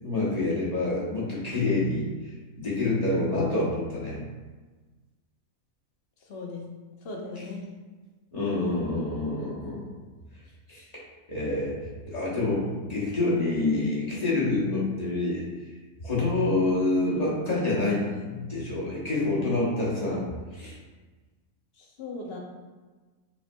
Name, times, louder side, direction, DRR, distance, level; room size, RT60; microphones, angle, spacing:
voice 1, 0.0-2.0 2.6-4.2 8.3-9.9 10.7-10.9 11.3-15.4 16.0-20.3 20.5-20.8, left 2 dB, 30° left, -7 dB, 1.0 m, -27 dB
voice 2, 6.3-6.6 7.0-7.6 21.8-22.4, left 3 dB, 55° left, 0 dB, 0.8 m, -37 dB
5.4 x 3.4 x 2.2 m, 1.3 s
omnidirectional pair, 1.4 m